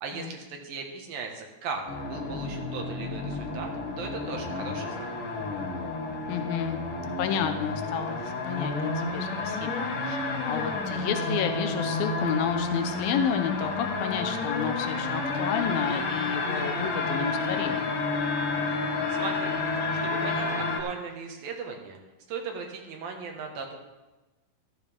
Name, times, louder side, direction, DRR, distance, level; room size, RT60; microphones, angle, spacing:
voice 1, 0.0-3.7 4.0-5.1 19.1-19.6 20.0-20.5 20.8-22.0 22.3-23.8, right 5 dB, 80° right, 2 dB, 3.2 m, -37 dB
sound 1, 1.9-20.8, left 3 dB, 65° left, 3.1 m, -30 dB
voice 2, 6.3-6.8 7.2-10.2 10.5-17.9, left 8 dB, 85° left, 7 dB, 2.8 m, -31 dB
14.5 x 14.0 x 3.6 m, 1.1 s
omnidirectional pair, 4.1 m